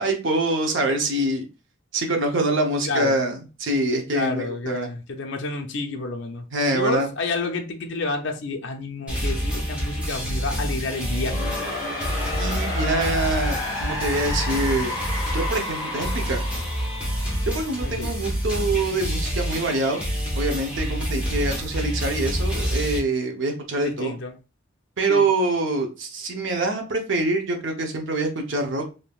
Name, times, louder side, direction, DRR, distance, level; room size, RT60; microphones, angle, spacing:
voice 1, 0.0-1.4 1.9-4.9 6.5-7.1 12.4-14.9 15.3-16.4 17.4-20.0 20.3-24.1 25.0-28.8, right 2 dB, 60° right, 0.7 m, -25 dB
voice 2, 2.8-3.2 4.1-6.4 6.7-11.4 17.8-18.1 23.8-24.3 25.1-25.3, left 3 dB, 55° left, 0.5 m, -29 dB
sound 1, 9.1-23.0, equal, 5° right, 1.0 m, -27 dB
sound 2, 11.0-18.0, left 2 dB, 15° left, 1.4 m, -31 dB
3.5 x 2.7 x 2.3 m
head